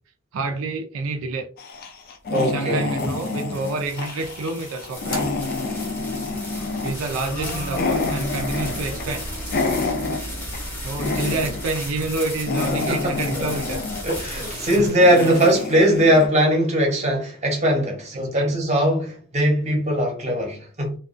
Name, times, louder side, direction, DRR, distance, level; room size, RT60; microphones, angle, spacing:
voice 1, 0.3-1.5 2.4-5.2 6.8-9.3 10.8-13.8 14.8-14.9 15.2-15.4 18.1-18.5, right 3 dB, 75° right, 0.4 m, -28 dB
sound 1, 1.6-10.7 11.0-11.8 12.1-16.3, left 3 dB, 45° left, 0.4 m, -28 dB
sound 2, 2.2-16.0, left 1 dB, 10° left, 0.7 m, -37 dB
voice 2, 2.3-2.8 12.7-13.6 14.0-21.0, equal, 35° right, 0.8 m, -20 dB
sound 3, 5.0-14.9, equal, 75° left, 0.8 m, -36 dB
2.4 x 2.2 x 2.4 m
head